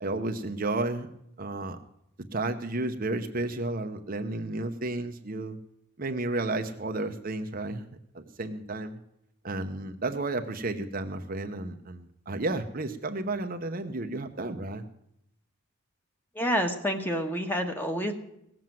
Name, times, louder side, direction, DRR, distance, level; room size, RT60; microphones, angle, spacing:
voice 1, 0.0-1.1 1.4-1.8 2.3-5.6 6.0-7.8 8.1-9.0 9.4-14.8, right 2 dB, 40° right, 6 dB, 0.8 m, -32 dB
voice 2, 16.3-18.1, equal, 10° left, 5 dB, 1.3 m, -28 dB
17.5 x 7.7 x 7.5 m, 0.77 s
head